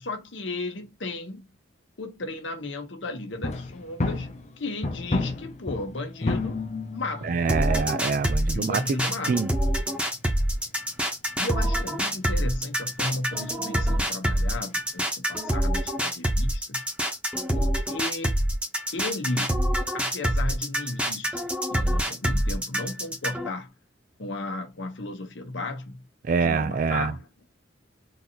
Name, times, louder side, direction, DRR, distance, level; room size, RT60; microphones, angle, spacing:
voice 1, 0.0-1.5 2.0-6.6 6.9-7.5 8.5-9.4 11.4-16.9 17.5-18.3 18.9-21.4 21.7-23.7 24.2-26.0 26.4-27.3, left 2 dB, 85° left, 0.9 m, -34 dB
sound 1, 3.3-11.0 11.3-11.5 11.9-12.0 12.2-12.3 12.5-12.6 12.9-13.2 13.8-14.0 14.4-14.5, left 3 dB, 40° left, 0.7 m, -33 dB
voice 2, 7.2-8.8 9.3-9.5 26.3-27.1, right 5 dB, 45° right, 0.3 m, -25 dB
sound 2, 7.5-23.5, equal, 5° right, 0.8 m, -26 dB
3.9 x 2.7 x 2.9 m
head